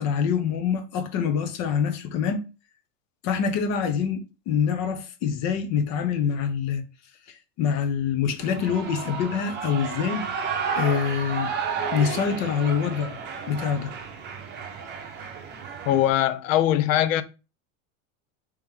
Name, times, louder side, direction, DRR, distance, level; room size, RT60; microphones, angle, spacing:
voice 1, 0.0-2.4 3.2-6.8 7.3-10.3 10.8-11.5 11.9-13.2 13.5-13.9, left 7 dB, 45° left, 0.8 m, -25 dB
Shout / Cheering, 8.4-16.1, right 6 dB, 25° right, 0.8 m, -32 dB
voice 2, 15.9-17.2, left 12 dB, 85° left, 0.6 m, -21 dB
3.1 x 3.0 x 3.6 m
supercardioid pair, 135°, 38 cm